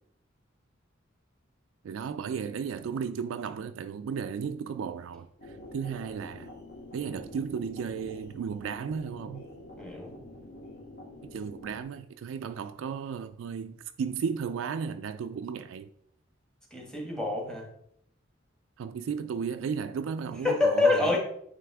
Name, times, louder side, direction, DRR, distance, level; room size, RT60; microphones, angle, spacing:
voice 1, 1.8-6.5 6.9-9.4 11.3-15.9 18.8-21.2, right 6 dB, 80° right, 0.3 m, -34 dB
sound 1, 5.4-11.8, left 1 dB, 50° left, 2.0 m, -47 dB
voice 2, 9.8-10.2 16.7-17.7 20.4-21.2, left 3 dB, 5° left, 1.3 m, -26 dB
9.2 x 3.4 x 3.5 m
head